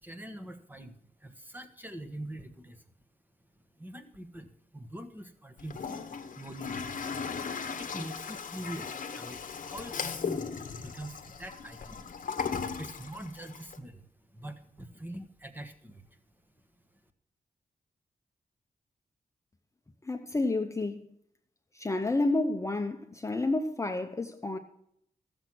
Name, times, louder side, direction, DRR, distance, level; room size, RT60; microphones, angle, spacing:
voice 1, 0.0-0.9 1.2-2.8 3.8-4.5 4.7-5.8 6.4-7.0 7.8-10.5 10.7-12.0 12.8-14.0 14.3-16.0, right 1 dB, 15° right, 1.2 m, -43 dB
Toilet flush, 5.6-13.8, left 6 dB, 65° left, 0.9 m, -37 dB
voice 2, 20.0-21.1 21.7-24.6, left 2 dB, 20° left, 0.7 m, -30 dB
14.0 x 7.0 x 6.0 m
wide cardioid pair, 115°, 14 cm